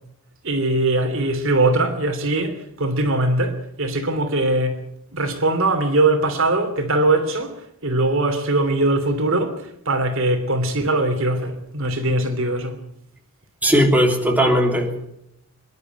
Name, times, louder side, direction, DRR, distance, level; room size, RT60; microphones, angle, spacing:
voice 1, 0.4-4.8 5.1-12.8, right 2 dB, 65° right, 3.0 m, -21 dB
voice 2, 13.6-15.1, equal, 10° right, 3.2 m, -18 dB
26.0 x 11.5 x 9.5 m
head